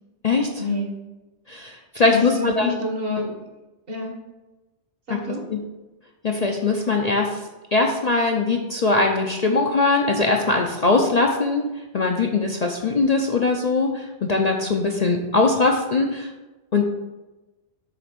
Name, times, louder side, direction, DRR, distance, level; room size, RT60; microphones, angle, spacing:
voice 1, 0.6-0.9 2.1-3.4 3.9-4.2 5.1-5.4, left 2 dB, 55° right, 2 dB, 1.5 m, -27 dB
voice 2, 1.5-2.8 5.1-5.2 5.5-5.6 6.2-7.4 7.7-11.6 11.9-16.3 16.7-16.8, left 3 dB, 45° left, 1 dB, 0.6 m, -21 dB
6.7 x 4.1 x 6.0 m, 1.1 s
omnidirectional pair, 1.2 m